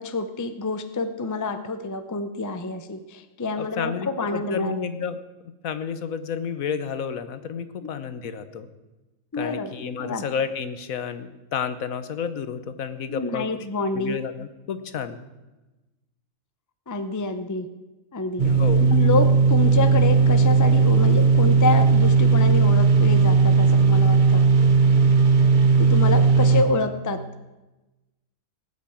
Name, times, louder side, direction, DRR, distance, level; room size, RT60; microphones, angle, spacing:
voice 1, 0.0-4.7 7.8-7.9 9.3-10.2 13.1-14.2 16.9-17.7 18.1-18.5 18.8-24.4 25.8-27.2, left 3 dB, 20° left, 9 dB, 0.5 m, -27 dB
voice 2, 3.5-5.2 5.6-8.7 9.4-13.5 13.9-15.3 18.4-18.9, left 7 dB, 70° left, 11 dB, 1.3 m, -31 dB
sound 1, 18.4-26.6, right 5 dB, 40° right, 1.0 m, -17 dB
18.0 x 6.3 x 8.6 m, 1.1 s
omnidirectional pair, 1.5 m